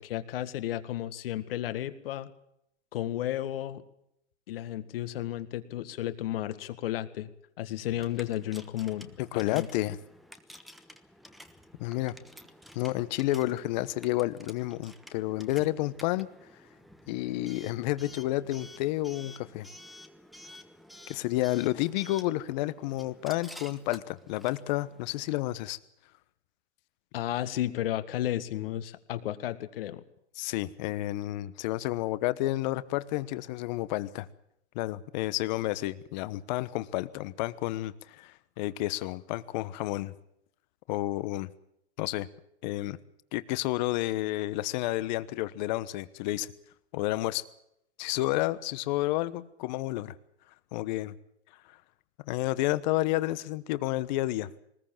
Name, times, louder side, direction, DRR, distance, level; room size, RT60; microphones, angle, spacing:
voice 1, 0.0-2.3 2.9-3.8 4.5-7.3 7.6-9.7 27.1-30.0, left 13 dB, 55° left, 12 dB, 1.8 m, -33 dB
Coin (dropping) / Alarm, 7.8-25.3, left 1 dB, ahead, 1.2 m, -51 dB
voice 2, 9.3-10.0 11.8-12.1 12.7-16.3 17.1-19.7 21.1-25.8 30.4-34.3 34.7-40.1 40.9-41.5 42.0-42.3 42.6-43.0 43.3-46.5 46.9-47.4 48.0-50.1 50.7-51.1 52.3-54.5, left 17 dB, 40° left, 16 dB, 1.2 m, -30 dB
20.0 x 19.5 x 7.4 m, 0.77 s
hypercardioid pair, 130°, 34 cm